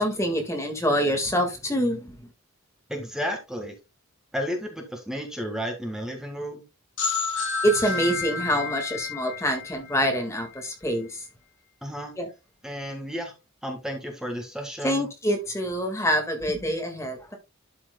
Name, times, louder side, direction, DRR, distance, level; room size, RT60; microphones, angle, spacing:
voice 1, 0.0-2.2 7.6-11.2 12.2-12.3 14.8-17.4, equal, 15° left, 1.7 m, -26 dB
voice 2, 2.9-3.7 4.3-6.6 11.8-12.1 12.6-13.3 13.6-15.1, equal, 5° right, 1.6 m, -32 dB
sound 1, 7.0-10.6, left 5 dB, 60° left, 5.0 m, -31 dB
12.0 x 6.0 x 2.2 m
head